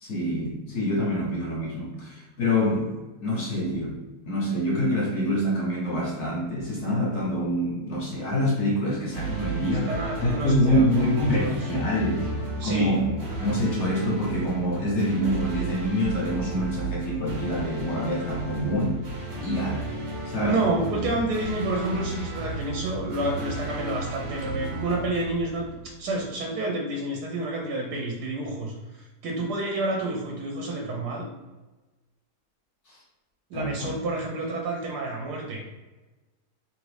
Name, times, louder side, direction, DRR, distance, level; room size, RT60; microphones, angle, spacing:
voice 1, 0.0-2.9 3.2-4.0 4.3-9.9 10.2-12.3 12.6-13.1 13.4-18.9 19.4-19.8 20.3-20.8 32.9-33.0 33.5-33.9, equal, 55° left, -3 dB, 0.8 m, -26 dB
sound 1, 9.1-26.2, right 3 dB, 50° right, 0.9 m, -33 dB
voice 2, 9.6-11.6 12.6-13.1 20.3-31.3 33.5-35.6, right 2 dB, 75° right, -1 dB, 1.1 m, -29 dB
2.9 x 2.5 x 3.2 m, 1.1 s
omnidirectional pair, 1.8 m